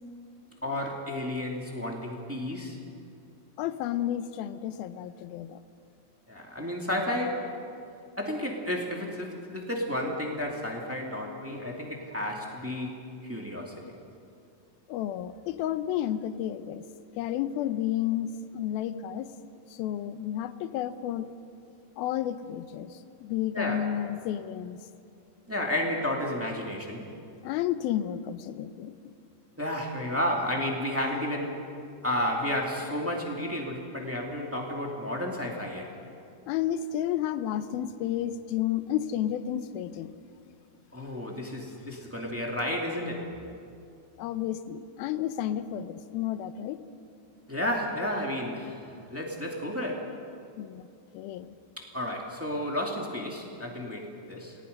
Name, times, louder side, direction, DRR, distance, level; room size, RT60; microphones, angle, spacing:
voice 1, 0.6-2.8 6.3-7.7 8.2-13.7 23.5-23.8 25.5-27.1 29.6-31.6 32.0-35.9 40.9-43.3 47.5-50.1 51.8-54.6, left 1 dB, 5° right, -1 dB, 1.5 m, -32 dB
voice 2, 3.6-5.6 14.9-16.8 17.2-19.3 19.7-21.3 22.0-24.8 27.4-29.1 36.5-40.1 44.2-46.8 50.6-50.9 51.1-51.6, left 11 dB, 85° left, 12 dB, 2.6 m, -31 dB
29.0 x 19.0 x 5.3 m, 2.5 s
omnidirectional pair, 4.2 m